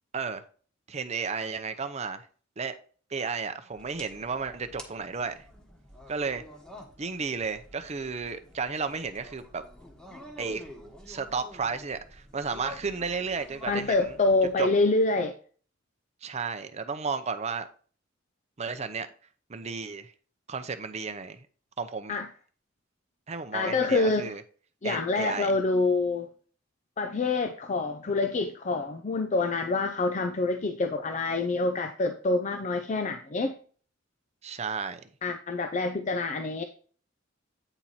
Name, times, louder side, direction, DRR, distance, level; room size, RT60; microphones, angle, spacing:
voice 1, 0.9-2.3 2.6-2.8 3.1-5.4 6.1-6.4 7.0-9.6 10.4-10.6 11.1-14.1 14.6-14.7 16.2-17.7 18.6-19.1 19.5-20.1 20.5-21.5 21.8-22.2 23.3-24.4 24.8-25.5 34.4-35.0, right 5 dB, 35° right, 0.6 m, -33 dB
sound 1, 3.7-14.6, equal, 5° left, 1.3 m, -49 dB
voice 2, 13.7-15.4 22.1-22.3 23.5-24.3 24.8-26.3 27.0-33.5 35.2-36.6, left 3 dB, 40° left, 0.5 m, -26 dB
8.9 x 4.4 x 4.2 m
head